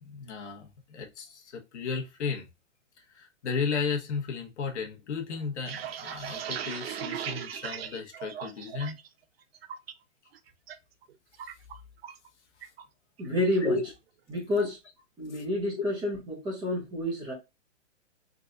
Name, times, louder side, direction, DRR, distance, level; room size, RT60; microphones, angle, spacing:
voice 1, 0.0-2.4 3.2-9.0 13.6-13.8 14.6-14.7, left 5 dB, 60° left, 1.3 m, -34 dB
sound 1, 5.4-9.1 9.4-9.9 10.3-10.8 11.0-12.3 12.6-12.8 13.2-13.7, right 9 dB, 50° right, 0.6 m, -38 dB
voice 2, 13.2-13.7 14.3-14.8 15.2-17.3, left 1 dB, 10° right, 1.7 m, -29 dB
3.9 x 3.9 x 2.5 m
hypercardioid pair, 155°, 38 cm